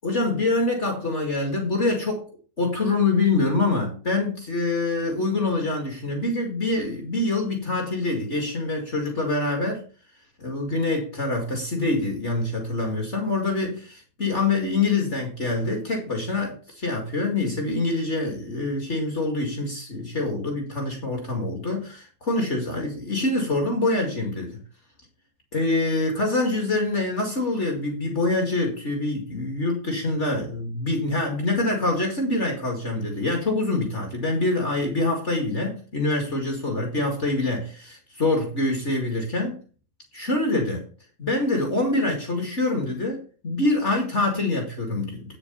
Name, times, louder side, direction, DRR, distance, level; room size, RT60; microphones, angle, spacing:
voice 1, 0.0-2.3 2.6-9.9 10.4-24.6 25.5-39.6 40.1-40.8 41.2-45.4, left 2 dB, 35° left, 2 dB, 2.4 m, -25 dB
9.0 x 6.9 x 5.5 m, 0.38 s
omnidirectional pair, 2.0 m